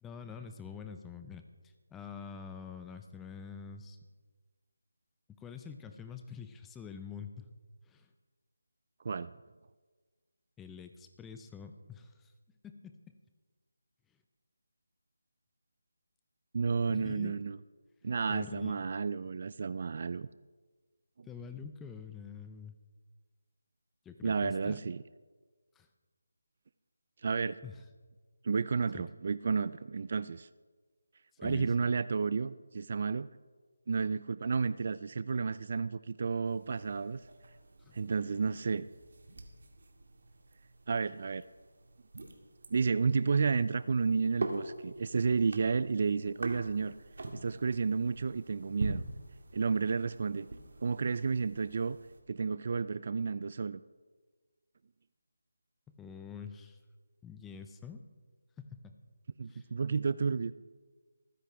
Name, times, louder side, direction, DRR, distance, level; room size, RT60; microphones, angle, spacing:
voice 1, 0.0-4.0 5.4-7.5 7.9-8.1 10.6-12.3 12.6-13.1 16.9-17.3 18.3-18.9 21.3-22.7 24.0-24.8 25.8-25.9 27.6-27.8 28.9-29.1 31.4-31.9 37.8-38.0 55.9-56.8 57.2-58.0 58.6-58.9 59.5-59.7, left 6 dB, 5° left, 7 dB, 0.5 m, -46 dB
voice 2, 16.5-17.6 18.0-20.3 21.2-21.3 24.2-25.0 27.2-27.6 28.4-30.5 31.4-33.3 33.9-37.2 37.9-38.9 40.9-41.4 42.7-46.9 47.3-49.0 49.5-50.5 50.8-52.0 52.3-53.8 59.4-60.5, right 5 dB, 45° right, 16 dB, 0.3 m, -31 dB
sound 1, 36.4-52.2, right 2 dB, 60° right, 1.9 m, -45 dB
25.5 x 9.9 x 3.4 m, 1.4 s
figure-of-eight pair, 165°, 0 cm